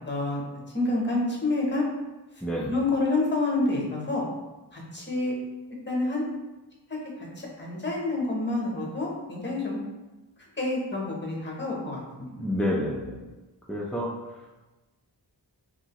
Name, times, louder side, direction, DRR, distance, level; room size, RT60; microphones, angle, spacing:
voice 1, 0.1-0.4 0.7-1.8 2.7-4.2 4.7-5.3 5.9-6.2 7.4-9.8 10.6-12.3, left 2 dB, 25° left, -3 dB, 0.9 m, -28 dB
voice 2, 2.4-2.8 12.3-13.3 13.7-14.1, left 1 dB, 5° left, -6 dB, 0.4 m, -29 dB
2.8 x 2.6 x 2.9 m, 1.1 s
wide cardioid pair, 45°, 44 cm